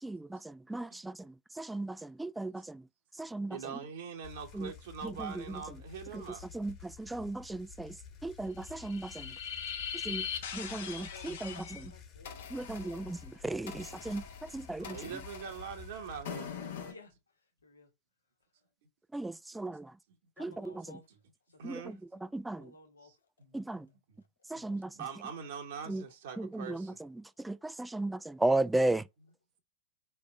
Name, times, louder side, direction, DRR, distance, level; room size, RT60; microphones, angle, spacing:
voice 1, 0.0-2.9 3.2-3.6 4.5-4.7 5.0-5.4 6.1-6.2 6.5-8.0 8.2-9.4 10.0-10.3 10.5-11.9 12.5-15.0 19.1-19.9 20.4-21.0 21.6-22.7 23.5-23.9 24.5-24.9 25.9-26.0 26.4-29.1, right 2 dB, 5° right, 0.4 m, -36 dB
voice 2, 3.4-6.4 9.7-9.8 14.8-16.5 20.9-21.0 21.6-22.0 23.0-24.2 24.5-27.0, right 6 dB, 55° right, 1.1 m, -44 dB
sound 1, 4.2-16.2, left 7 dB, 35° left, 1.7 m, -51 dB
sound 2, 8.6-11.9 12.2-16.9, left 7 dB, 55° left, 1.0 m, -42 dB
voice 3, 10.8-13.0 13.5-13.7 14.9-15.1 16.9-17.1 17.6-17.9 20.4-21.1 21.5-21.8 22.5-23.1 27.7-27.8, left 4 dB, 75° left, 1.3 m, -55 dB
4.8 x 3.4 x 3.2 m
figure-of-eight pair, 90°, 0 cm